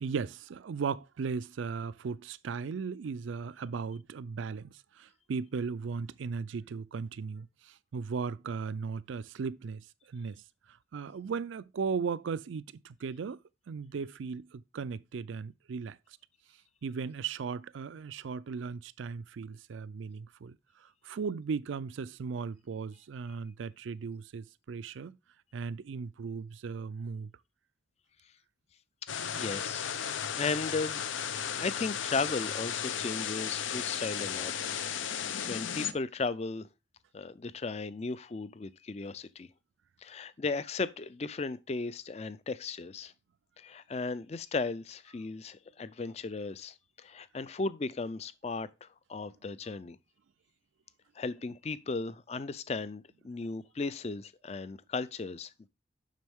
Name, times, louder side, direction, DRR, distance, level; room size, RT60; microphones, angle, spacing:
voice 1, 0.0-9.8 10.1-10.4 10.9-13.4 13.7-16.0 16.8-20.6 21.0-25.2 25.5-27.3, right 5 dB, 80° right, 0.4 m, -37 dB
sound 1, 29.1-35.9, left 8 dB, 80° left, 0.7 m, -35 dB
voice 2, 29.1-31.0 31.6-34.7 35.5-36.7 37.1-39.5 40.0-43.1 43.6-50.0 51.2-55.7, left 4 dB, 35° left, 0.4 m, -36 dB
7.5 x 6.1 x 3.5 m
head